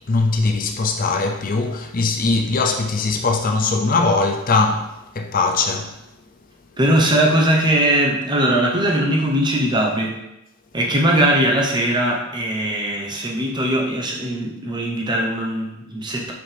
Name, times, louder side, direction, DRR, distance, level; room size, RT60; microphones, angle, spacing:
voice 1, 0.1-4.9 5.1-5.9, left 3 dB, 45° left, 0.5 m, -20 dB
voice 2, 6.8-10.2 10.7-16.3, right 1 dB, 20° right, 0.9 m, -20 dB
5.9 x 5.0 x 3.4 m
head